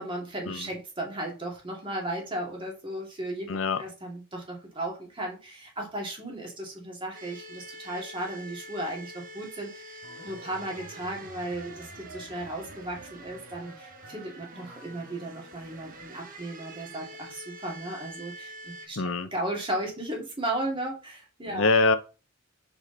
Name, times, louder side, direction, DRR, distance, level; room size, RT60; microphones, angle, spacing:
voice 1, 0.0-19.0 19.3-21.7, right 1 dB, 25° right, 2.3 m, -35 dB
voice 2, 3.5-3.8 19.0-19.3 21.5-22.0, left 3 dB, 70° left, 0.8 m, -24 dB
sound 1, 7.1-18.9, right 1 dB, 40° right, 1.2 m, -46 dB
sound 2, 10.0-16.5, right 1 dB, 60° right, 1.5 m, -49 dB
6.4 x 4.9 x 3.9 m
head